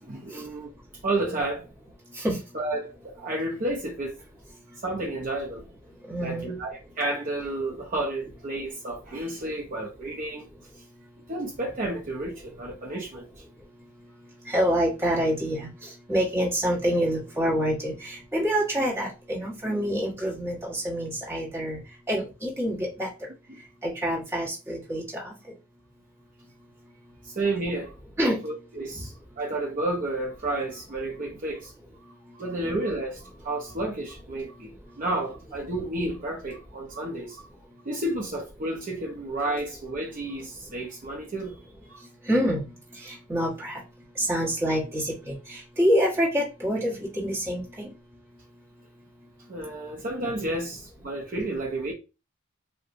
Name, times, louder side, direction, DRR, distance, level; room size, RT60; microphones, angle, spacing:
voice 1, 0.0-0.7 1.0-1.6 2.5-4.2 4.8-5.6 6.2-10.5 11.3-13.2 23.5-23.6 27.2-27.9 28.4-31.7 32.3-37.5 37.9-41.6 41.9-42.0 49.5-51.9, right 2 dB, 40° right, 0.6 m, -31 dB
voice 2, 6.1-6.6 14.5-15.7 16.1-21.8 22.1-23.1 23.8-25.3 28.2-28.4 42.3-42.7 43.0-43.8 44.2-47.9, equal, 15° right, 1.2 m, -26 dB
4.2 x 2.2 x 2.6 m
head